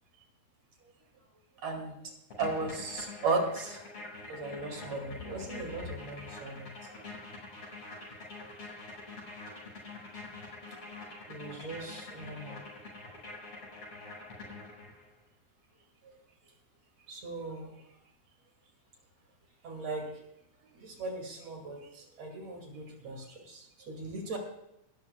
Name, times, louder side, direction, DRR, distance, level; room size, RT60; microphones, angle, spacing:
voice 1, 1.6-2.0 2.4-3.8 4.3-6.7 11.3-12.6 17.1-17.7 19.6-20.1 20.7-24.4, right 3 dB, 50° right, 3 dB, 3.4 m, -36 dB
sound 1, 2.3-15.1, left 3 dB, 45° left, 6.5 m, -46 dB
19.5 x 13.0 x 2.3 m, 0.86 s
omnidirectional pair, 4.0 m